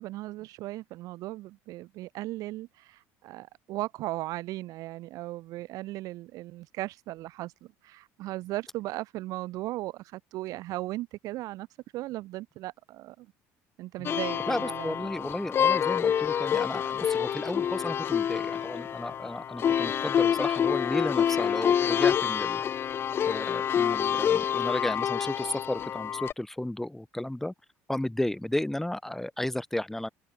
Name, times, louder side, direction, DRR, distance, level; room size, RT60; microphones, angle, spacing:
voice 1, 0.0-11.7 11.9-13.3 13.8-15.0, right 17 dB, 65° right, 6.7 m, -37 dB
sound 1, 14.0-26.3, left 8 dB, 40° left, 0.6 m, -27 dB
voice 2, 14.5-22.6 23.3-27.5 27.9-30.1, left 1 dB, 5° left, 2.9 m, -33 dB
supercardioid pair, 110°, 6 cm